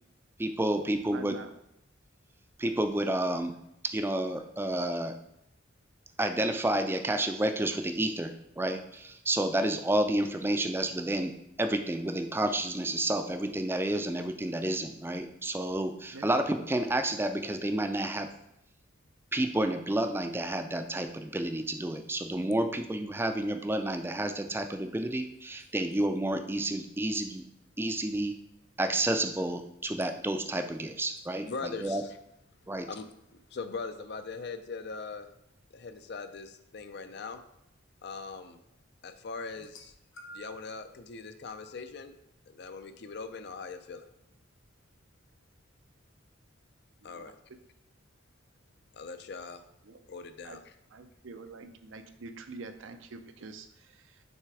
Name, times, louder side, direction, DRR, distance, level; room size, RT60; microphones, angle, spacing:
voice 1, 0.4-1.4 2.6-3.5 3.8-5.2 6.2-18.3 19.3-27.4 27.8-28.4 28.8-32.0 32.7-32.9, right 1 dB, 10° right, 7 dB, 0.4 m, -30 dB
voice 2, 1.1-1.5 16.1-16.3 47.0-47.3 49.8-50.0 50.4-50.6 50.9-54.2, right 3 dB, 70° right, 8 dB, 0.5 m, -45 dB
voice 3, 31.4-32.0 32.8-33.1 33.5-35.3 35.7-37.4 38.0-38.6 39.0-39.9 40.3-42.2 42.5-44.0 47.0-47.3 48.9-49.6 50.1-50.8, left 4 dB, 55° left, 9 dB, 0.5 m, -41 dB
sound 1, 39.5-40.7 41.6-41.8 42.8-42.9, right 1 dB, 80° left, 0.8 m, -50 dB
6.3 x 3.3 x 4.8 m, 0.81 s
head